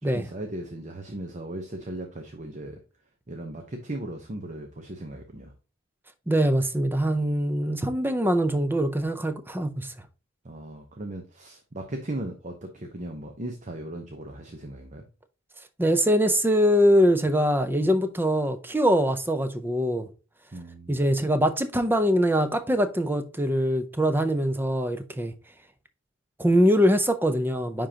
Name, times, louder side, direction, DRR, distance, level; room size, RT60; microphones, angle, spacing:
voice 1, 0.0-2.8 3.3-5.5 10.4-15.0 20.5-21.0, right 1 dB, 35° right, 0.8 m, -37 dB
voice 2, 6.3-9.9 15.8-20.1 20.9-25.3 26.4-27.9, equal, 10° right, 0.5 m, -23 dB
9.9 x 3.7 x 2.8 m
head